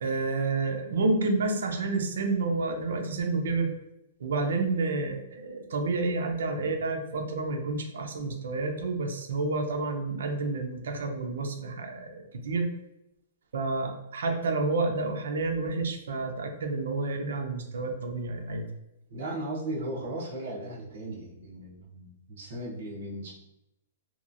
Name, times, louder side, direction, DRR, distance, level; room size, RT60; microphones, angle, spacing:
voice 1, 0.0-3.7 4.2-12.7 13.5-18.7, right 3 dB, 80° right, 4 dB, 0.5 m, -29 dB
voice 2, 19.1-23.3, right 1 dB, 55° right, -5 dB, 0.9 m, -36 dB
2.9 x 2.3 x 2.5 m, 0.88 s
hypercardioid pair, 165°, 0 cm